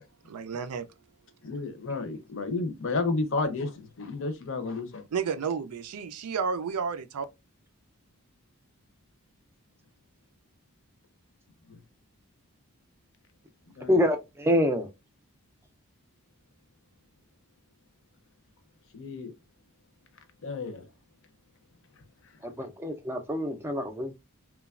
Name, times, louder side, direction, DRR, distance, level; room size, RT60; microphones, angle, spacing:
voice 1, 0.3-0.9 5.1-7.3, right 6 dB, 90° right, 0.4 m, -31 dB
voice 2, 1.4-5.0 11.7-11.8 13.8-14.0 18.9-19.3 20.4-20.8, left 3 dB, 60° left, 0.6 m, -31 dB
voice 3, 13.9-14.9 22.4-24.2, equal, 10° right, 0.4 m, -26 dB
3.0 x 2.2 x 2.3 m
head